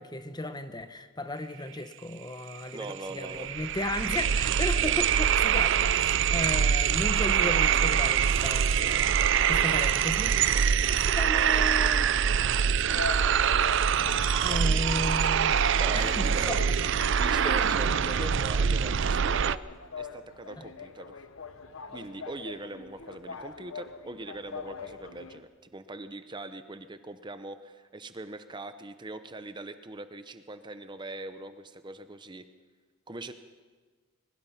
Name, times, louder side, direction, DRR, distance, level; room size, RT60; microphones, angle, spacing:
voice 1, 0.0-9.1 9.5-10.4 11.1-12.1 14.4-15.6 15.9-16.6 17.4-17.6, left 1 dB, 20° left, 9 dB, 1.0 m, -35 dB
sound 1, 2.5-2.6 2.9-19.6, right 8 dB, 60° right, 0.5 m, -24 dB
voice 2, 2.7-3.5 10.4-10.9 14.6-14.8 15.7-16.6 17.1-19.6 20.0-21.1 21.9-32.4 33.1-33.3, right 2 dB, 20° right, 10 dB, 0.8 m, -41 dB
sound 2, 12.9-25.4, left 4 dB, 75° left, 1.1 m, -42 dB
22.0 x 21.0 x 5.8 m, 1.5 s
head